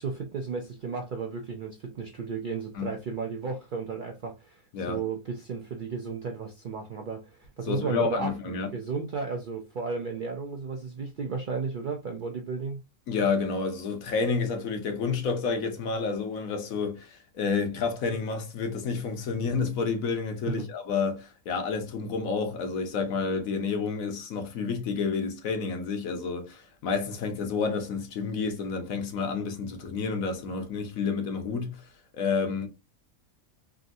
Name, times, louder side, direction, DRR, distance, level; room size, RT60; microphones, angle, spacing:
voice 1, 0.0-12.8 20.6-20.7, right 5 dB, 90° right, 0.4 m, -34 dB
voice 2, 7.7-8.8 13.1-32.7, left 5 dB, 70° left, 1.2 m, -30 dB
3.6 x 2.7 x 2.4 m
omnidirectional pair, 1.5 m